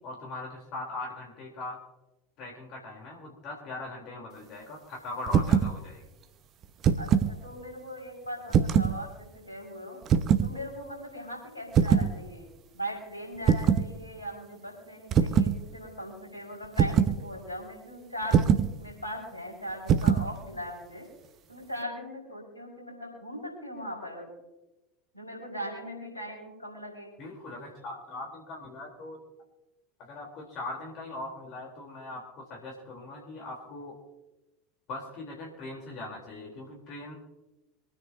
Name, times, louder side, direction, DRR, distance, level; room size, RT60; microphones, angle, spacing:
voice 1, 0.0-1.8 2.4-6.0 27.2-29.2 30.0-34.0 34.9-37.1, left 2 dB, 50° left, -1 dB, 4.0 m, -40 dB
sound 1, 5.3-5.7 6.6-7.3 8.5-9.0 10.1-10.5 11.7-12.1 13.5-13.9 15.1-15.6 16.8-17.2 18.3-18.7 19.9-20.3, right 7 dB, 40° right, 0.9 m, -22 dB
voice 2, 7.0-10.0 10.4-12.5 12.7-21.1 21.5-24.3 25.1-27.1, equal, 90° left, -3 dB, 5.7 m, -39 dB
26.0 x 9.6 x 2.9 m, 1.0 s
figure-of-eight pair, 75°, 0 cm